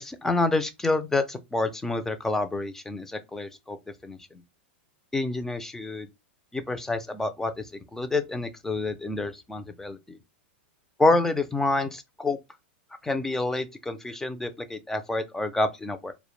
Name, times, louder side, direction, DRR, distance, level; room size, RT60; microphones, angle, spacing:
voice 1, 0.0-3.8 4.0-4.2 5.1-6.1 6.5-7.6 7.9-10.2 11.0-12.4 13.0-16.1, left 2 dB, 5° left, 0.3 m, -28 dB
2.1 x 2.1 x 3.0 m
hypercardioid pair, 135°, 6 cm